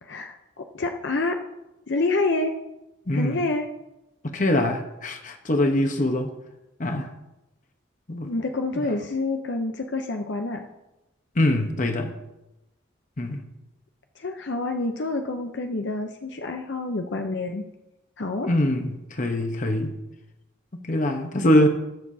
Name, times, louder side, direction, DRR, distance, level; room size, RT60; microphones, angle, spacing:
voice 1, 0.0-1.4 1.9-2.6 3.1-3.7 8.2-10.7 14.2-17.6 18.2-18.5, left 2 dB, 65° left, 4 dB, 0.7 m, -27 dB
voice 2, 3.1-3.4 4.2-6.3 6.8-7.1 8.1-8.3 8.7-8.9 11.4-12.1 13.2-13.4 18.4-19.9 20.9-21.7, left 1 dB, 40° left, 5 dB, 1.0 m, -23 dB
19.5 x 6.7 x 2.8 m, 0.96 s
head